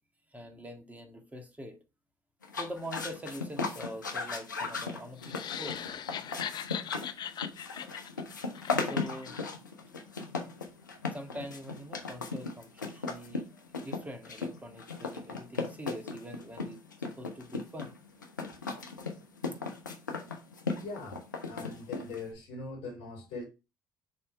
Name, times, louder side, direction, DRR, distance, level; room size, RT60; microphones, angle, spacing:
voice 1, 0.3-1.8 2.5-5.9 8.8-9.4 11.1-13.5 13.8-17.9, equal, 15° right, 1.8 m, -44 dB
sound 1, 2.4-22.3, left 4 dB, 90° left, 0.8 m, -37 dB
sound 2, 5.2-9.4, left 9 dB, 45° left, 0.6 m, -40 dB
voice 2, 20.8-23.4, left 3 dB, 65° left, 2.4 m, -41 dB
6.7 x 3.4 x 4.4 m
figure-of-eight pair, 55°, 10 cm